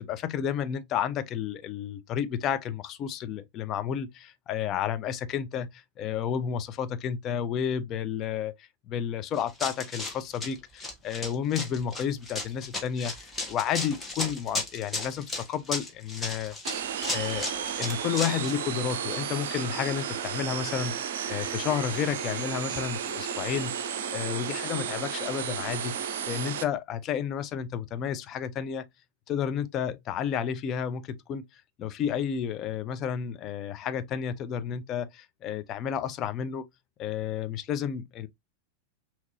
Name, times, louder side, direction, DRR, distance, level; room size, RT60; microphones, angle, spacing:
voice 1, 0.0-16.5 17.1-20.9 21.3-28.9 29.3-31.4 31.8-36.7 37.0-38.3, left 8 dB, 35° left, 0.6 m, -31 dB
Run, 9.3-18.5, left 2 dB, 10° left, 1.6 m, -35 dB
sound 1, 16.6-26.6, right 8 dB, 55° right, 0.6 m, -33 dB
5.8 x 2.9 x 2.6 m
figure-of-eight pair, 90°, 0 cm